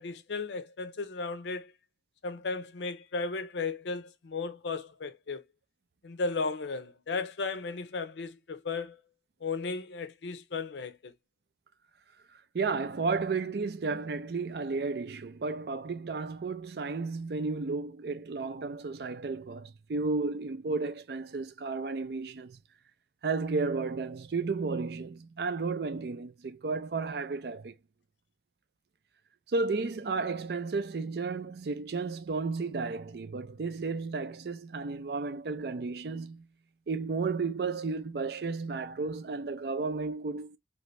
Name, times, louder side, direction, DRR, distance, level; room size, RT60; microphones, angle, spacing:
voice 1, 0.0-1.7 2.2-5.4 6.0-9.0 9.4-11.1, left 4 dB, 85° left, 0.6 m, -35 dB
voice 2, 12.5-22.6 23.2-27.7 29.5-36.5 36.9-40.6, right 4 dB, 65° right, 0.4 m, -33 dB
3.0 x 2.7 x 3.1 m
head